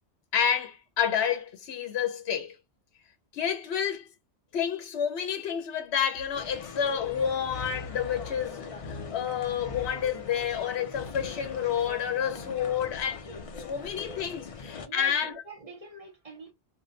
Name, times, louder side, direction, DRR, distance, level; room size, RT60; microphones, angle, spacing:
voice 1, 0.3-2.5 3.3-4.1 4.5-13.2 13.6-15.3, left 8 dB, 70° left, 1.0 m, -29 dB
sound 1, 6.3-14.9, left 4 dB, 45° left, 0.4 m, -41 dB
voice 2, 12.0-12.6 14.8-16.5, right 4 dB, 35° right, 0.8 m, -45 dB
2.6 x 2.1 x 3.8 m
omnidirectional pair, 1.2 m